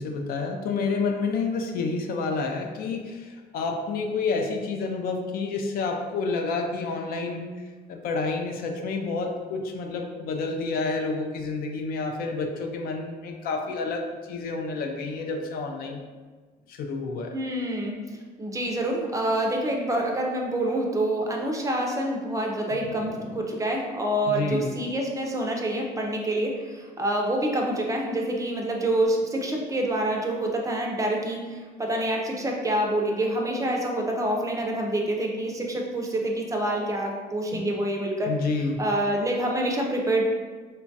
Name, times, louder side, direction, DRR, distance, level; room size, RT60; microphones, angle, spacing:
voice 1, 0.0-16.0 16.7-17.3 23.0-23.5 24.3-24.7 37.5-37.7 38.2-38.8, left 4 dB, 60° left, 3 dB, 0.4 m, -29 dB
voice 2, 17.3-18.0 18.4-38.3 38.8-40.2, right 1 dB, 20° right, 0 dB, 0.4 m, -27 dB
3.0 x 2.2 x 2.6 m, 1.4 s
cardioid pair, 110°, 17 cm